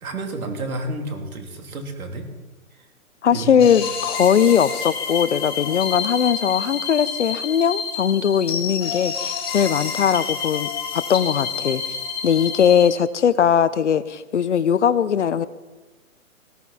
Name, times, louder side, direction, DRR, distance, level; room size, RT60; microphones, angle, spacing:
voice 1, 0.0-2.3 3.3-3.6, right 2 dB, 80° right, 3 dB, 3.3 m, -30 dB
voice 2, 3.2-12.0 12.2-15.5, left 8 dB, 55° left, 15 dB, 0.8 m, -20 dB
sound 1, 3.6-12.9, left 6 dB, 15° left, 1.1 m, -29 dB
19.0 x 14.0 x 4.2 m, 1.2 s
hypercardioid pair, 180°, 42 cm